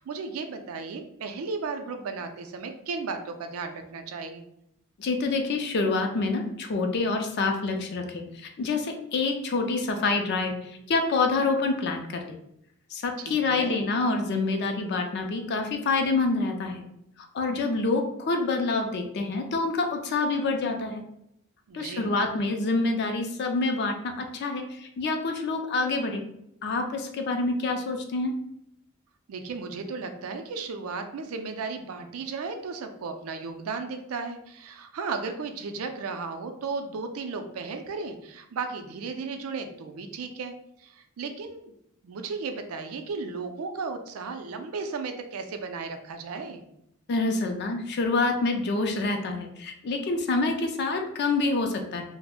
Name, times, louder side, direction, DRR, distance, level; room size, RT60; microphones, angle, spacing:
voice 1, 0.0-4.5 13.2-13.8 21.7-22.3 29.3-41.7 42.0-46.6, right 4 dB, 75° right, 7 dB, 0.4 m, -35 dB
voice 2, 5.0-12.3 12.9-16.8 17.3-21.0 21.7-26.2 26.6-28.3 47.1-52.0, left 3 dB, 50° left, 4 dB, 0.4 m, -27 dB
2.4 x 2.0 x 3.4 m, 0.77 s
head